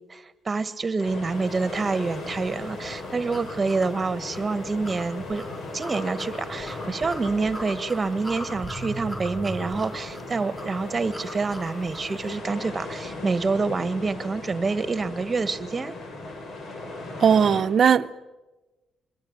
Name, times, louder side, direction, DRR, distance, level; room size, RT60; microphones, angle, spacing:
voice 1, 0.1-5.4 5.7-15.9, right 4 dB, 30° right, 1.6 m, -27 dB
sound 1, 1.0-17.6, left 2 dB, 60° left, 7.0 m, -38 dB
sound 2, 2.1-12.2, equal, 15° left, 6.8 m, -40 dB
voice 2, 17.2-18.2, right 7 dB, 55° right, 0.9 m, -18 dB
26.0 x 22.0 x 8.9 m
cardioid pair, 90°, 0 cm